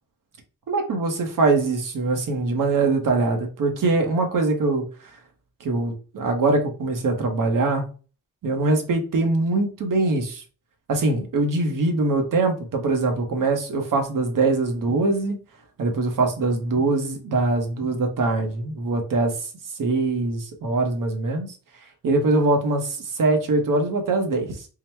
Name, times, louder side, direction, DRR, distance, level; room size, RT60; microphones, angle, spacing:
voice 1, 0.7-5.1 5.6-7.9 8.4-10.4 10.9-15.4 15.8-19.5 19.8-21.5 22.0-24.7, right 3 dB, 85° right, 1.0 m, -23 dB
3.8 x 2.1 x 4.4 m
cardioid pair, 80°, 32 cm